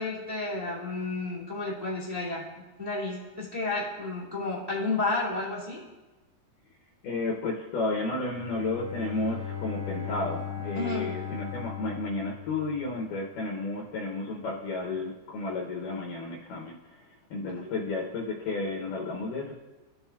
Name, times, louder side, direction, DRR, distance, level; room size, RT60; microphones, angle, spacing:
voice 1, 0.0-2.4 2.8-5.8 10.7-11.1 17.6-17.7, left 3 dB, 10° right, -9 dB, 1.1 m, -31 dB
voice 2, 7.0-19.5, left 3 dB, 75° left, -1 dB, 2.3 m, -32 dB
Bowed string instrument, 8.2-13.2, left 8 dB, 25° left, 1.9 m, -38 dB
15.5 x 5.7 x 2.3 m, 1.2 s
omnidirectional pair, 3.9 m